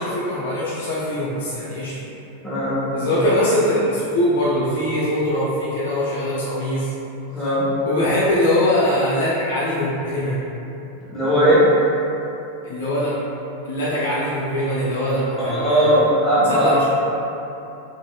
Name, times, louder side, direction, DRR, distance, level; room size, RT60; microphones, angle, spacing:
voice 1, 0.0-1.9 2.9-6.9 7.8-10.4 12.6-13.1 13.6-16.0 16.4-16.8, left 1 dB, 60° left, -9 dB, 0.6 m, -22 dB
voice 2, 2.4-3.1 7.3-7.7 11.1-11.7 15.4-16.7, equal, 15° left, -11 dB, 1.0 m, -18 dB
3.0 x 2.8 x 2.2 m, 2.9 s
figure-of-eight pair, 90°, 0 cm